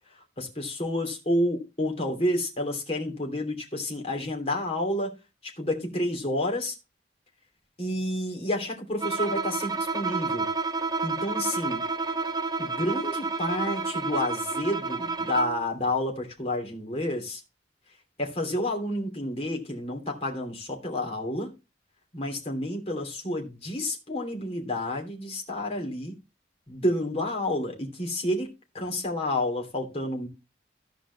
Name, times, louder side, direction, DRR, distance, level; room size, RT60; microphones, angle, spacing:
voice 1, 0.4-5.1 5.4-6.8 7.8-10.5 11.0-11.8 12.6-17.4 18.2-21.5 22.1-26.2 26.7-30.3, left 1 dB, 35° left, 3.1 m, -30 dB
Bowed string instrument, 9.0-15.7, right 4 dB, 20° right, 0.8 m, -30 dB
14.5 x 5.1 x 4.1 m
head